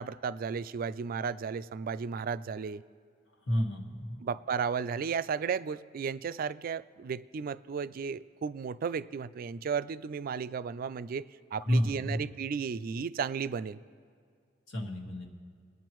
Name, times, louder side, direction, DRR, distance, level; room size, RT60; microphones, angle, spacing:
voice 1, 0.0-2.8 4.2-13.8, right 6 dB, 50° right, 15 dB, 0.3 m, -34 dB
voice 2, 3.5-4.1 11.6-12.2 14.7-15.3, equal, 90° left, 1 dB, 1.7 m, -30 dB
23.5 x 9.3 x 3.1 m, 2.2 s
head